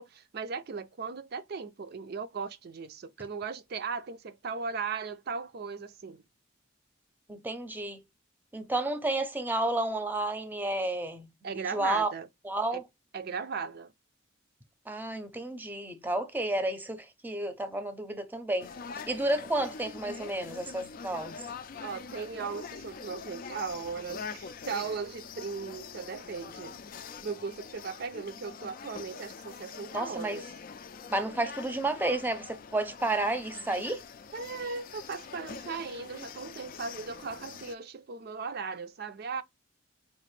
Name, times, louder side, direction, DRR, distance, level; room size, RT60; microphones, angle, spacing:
voice 1, 0.0-6.2 11.4-12.3 12.7-12.8 13.1-13.9 21.8-30.5 34.3-39.4, right 5 dB, 55° right, 0.4 m, -37 dB
voice 2, 7.3-8.0 8.5-11.3 11.5-12.1 12.4-12.8 14.9-18.7 19.1-21.4 29.9-30.4 31.1-34.0, right 2 dB, 10° right, 0.6 m, -31 dB
sound 1, 18.6-37.7, left 5 dB, 45° left, 0.4 m, -44 dB
4.9 x 2.5 x 3.1 m
head